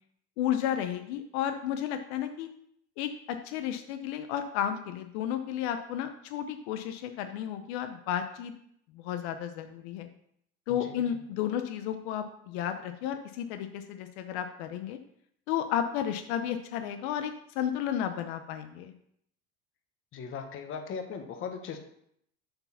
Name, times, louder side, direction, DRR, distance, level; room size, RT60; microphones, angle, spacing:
voice 1, 0.4-2.5 3.0-8.5 8.9-10.1 10.7-15.0 15.5-18.9, left 10 dB, 80° left, 8 dB, 0.8 m, -32 dB
voice 2, 20.1-21.8, left 6 dB, 40° left, 6 dB, 1.2 m, -38 dB
7.7 x 4.6 x 5.7 m, 0.71 s
supercardioid pair, 130°, 32 cm